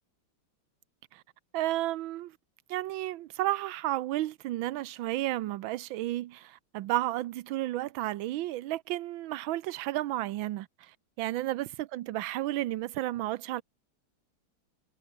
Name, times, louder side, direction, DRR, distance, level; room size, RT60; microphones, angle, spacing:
voice 1, 1.5-2.3 2.7-10.9 11.2-13.6, right 15 dB, 90° right, 1.5 m, -32 dB
omnidirectional pair, 2.1 m